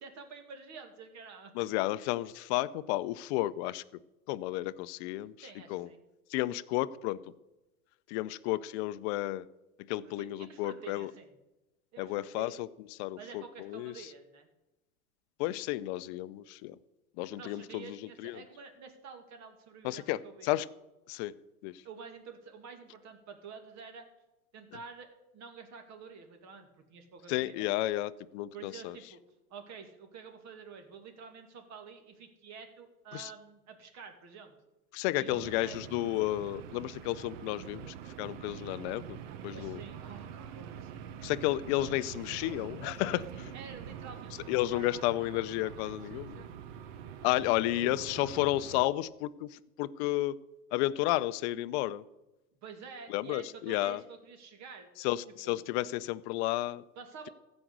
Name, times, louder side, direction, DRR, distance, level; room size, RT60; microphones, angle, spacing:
voice 1, 0.0-1.9 5.4-6.0 10.0-11.4 11.9-12.7 13.2-14.5 17.3-20.6 21.8-24.1 24.5-27.7 28.5-29.2 29.5-34.5 35.1-35.9 39.5-41.2 43.0-45.2 46.0-46.5 47.3-47.5 47.8-48.2 52.6-54.9 55.4-55.5 56.9-57.3, right 5 dB, 35° right, 6 dB, 2.3 m, -49 dB
voice 2, 1.6-3.8 4.3-5.3 5.7-5.9 6.3-7.2 8.1-9.4 9.9-11.1 12.0-12.7 13.0-13.2 13.7-13.9 15.4-16.7 17.2-18.0 18.2-18.4 19.8-20.2 20.4-20.7 21.1-21.3 21.6-21.7 27.3-28.9 33.1-33.3 34.9-39.2 39.4-39.8 41.2-43.2 44.5-46.4 47.2-49.5 49.8-50.3 50.7-52.0 53.1-54.0 55.0-56.8, left 16 dB, 50° left, 15 dB, 0.7 m, -32 dB
sound 1, 35.3-48.8, right 9 dB, 55° right, 1.1 m, -45 dB
15.0 x 5.3 x 8.0 m, 0.99 s
hypercardioid pair, 105°, 45 cm